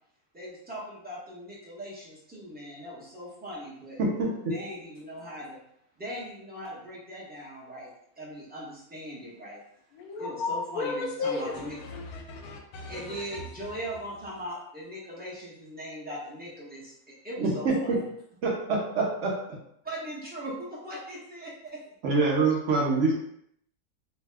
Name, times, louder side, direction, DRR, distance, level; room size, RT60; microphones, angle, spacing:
voice 1, 0.3-4.0 4.5-5.6 6.0-9.6 10.2-11.8 12.9-18.1 19.8-21.8, equal, 10° right, -7 dB, 0.6 m, -40 dB
voice 2, 4.0-4.5 17.4-18.0 18.4-19.3 22.0-23.1, right 3 dB, 65° right, -2 dB, 0.8 m, -25 dB
voice 3, 9.9-13.5, left 4 dB, 85° left, 2 dB, 1.1 m, -34 dB
2.7 x 2.3 x 3.3 m, 0.72 s
omnidirectional pair, 1.6 m